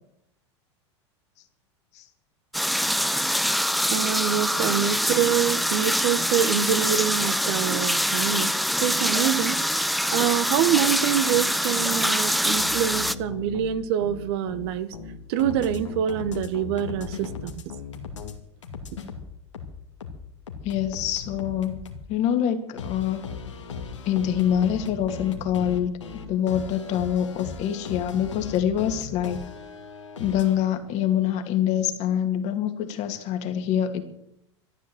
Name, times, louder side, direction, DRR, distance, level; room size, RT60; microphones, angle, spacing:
sound 1, 2.5-13.1, equal, ahead, 0.6 m, -24 dB
voice 1, 3.9-8.5 8.8-9.6 10.1-14.9 15.3-17.6, right 10 dB, 60° right, 13 dB, 1.2 m, -25 dB
sound 2, 12.6-18.3 18.6-22.1 22.8-30.6, left 5 dB, 80° left, 2.5 m, -38 dB
voice 2, 20.6-21.8 22.1-23.2 24.1-29.4 30.2-34.0, left 10 dB, 50° left, 6 dB, 2.4 m, -25 dB
13.5 x 10.5 x 7.9 m, 0.79 s
hypercardioid pair, 90°, 15 cm